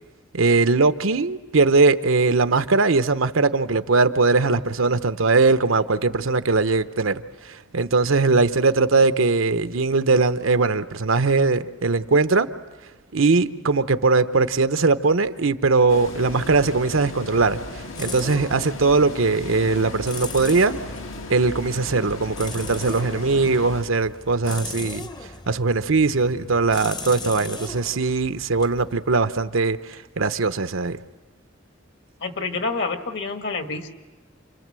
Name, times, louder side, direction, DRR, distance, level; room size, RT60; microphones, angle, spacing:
voice 1, 0.3-12.5 13.1-20.7 21.3-25.1 25.5-31.0, right 3 dB, 85° right, 0.9 m, -20 dB
sound 1, 15.9-23.8, left 2 dB, 85° left, 2.0 m, -36 dB
sound 2, 17.6-29.7, left 3 dB, 20° left, 0.8 m, -39 dB
voice 2, 32.2-33.9, left 3 dB, 60° left, 1.8 m, -28 dB
29.0 x 25.0 x 7.6 m
head